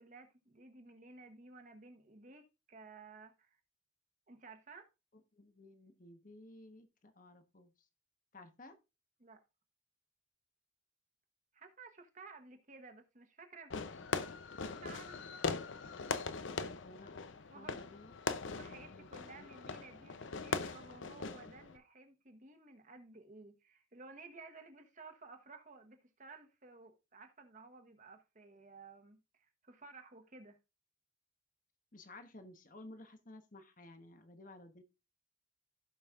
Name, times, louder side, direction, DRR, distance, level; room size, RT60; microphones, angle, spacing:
voice 1, 0.0-3.6 4.3-4.9 9.2-9.4 11.5-13.8 14.6-15.4 17.5-17.9 18.5-30.6, right 4 dB, 40° right, 1.2 m, -55 dB
voice 2, 5.3-7.7 8.3-8.8 16.6-17.1 17.5-19.1 19.3-19.5 31.9-34.8, left 2 dB, 40° left, 1.1 m, -55 dB
Fireworks, 13.7-21.8, left 4 dB, 70° left, 0.6 m, -41 dB
16.0 x 5.3 x 2.4 m
head